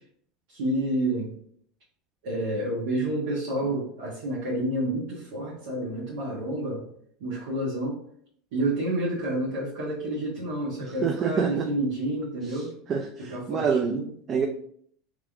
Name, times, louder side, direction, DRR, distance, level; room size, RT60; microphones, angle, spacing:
voice 1, 0.5-1.3 2.2-6.9 7.2-8.0 8.5-12.7 13.3-14.1, right 1 dB, 75° right, -6 dB, 1.5 m, -29 dB
voice 2, 10.8-11.7 12.5-12.6 12.9-14.0 14.3-14.5, right 6 dB, 40° right, 4 dB, 0.5 m, -27 dB
3.6 x 3.4 x 3.5 m, 0.63 s
supercardioid pair, 105°, 0 cm